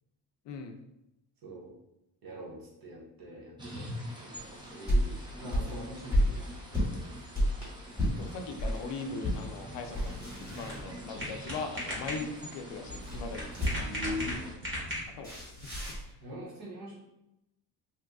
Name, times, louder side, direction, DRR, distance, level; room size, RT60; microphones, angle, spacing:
voice 1, 0.4-0.8 8.2-13.5 15.2-15.5, left 4 dB, 70° left, 5 dB, 0.5 m, -40 dB
voice 2, 1.4-1.7 2.2-7.6 13.8-14.5 16.2-17.0, left 1 dB, 55° right, -4 dB, 1.1 m, -43 dB
sound 1, 3.6-14.5, equal, 10° right, 0.3 m, -45 dB
sound 2, 4.3-8.8 9.2-9.5 9.8-11.3 12.9-14.1 15.2-16.1, equal, 10° left, 1.1 m, -31 dB
sound 3, 9.8-15.4, equal, 25° right, 1.0 m, -39 dB
2.8 x 2.3 x 3.4 m, 0.89 s
cardioid pair, 175°, 44 cm